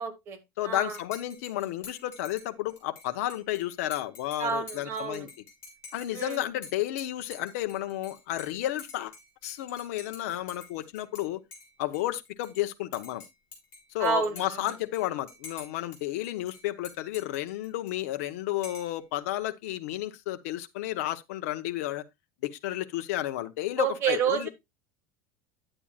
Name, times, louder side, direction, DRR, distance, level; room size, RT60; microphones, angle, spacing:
voice 1, 0.0-0.4 0.6-1.0 4.4-5.3 6.1-6.4 14.0-14.7 23.8-24.5, right 7 dB, 30° right, 1.5 m, -29 dB
voice 2, 0.6-5.3 5.9-9.1 9.4-11.4 11.8-13.2 13.9-22.0 22.4-24.5, left 14 dB, 75° left, 0.8 m, -32 dB
Dishes pots and pans / Cutlery silverware / Chink clink, 0.9-11.2 11.5-12.6 12.9-18.2 18.6-19.0, left 4 dB, 30° left, 4.9 m, -49 dB
10.0 x 8.8 x 2.4 m
cardioid pair, 170°, 8 cm